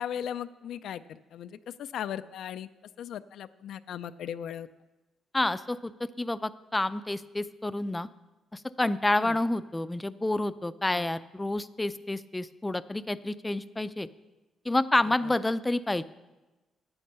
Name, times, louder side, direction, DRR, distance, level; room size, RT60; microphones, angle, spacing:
voice 1, 0.0-2.7 3.0-4.7 9.2-9.4 10.9-11.1 15.2-15.3, left 9 dB, 75° left, 12 dB, 0.4 m, -37 dB
voice 2, 5.3-8.1 8.5-14.1 14.7-16.0, left 2 dB, 15° left, 14 dB, 0.4 m, -29 dB
9.9 x 8.5 x 6.8 m, 1.1 s
cardioid pair, 90°, 0 cm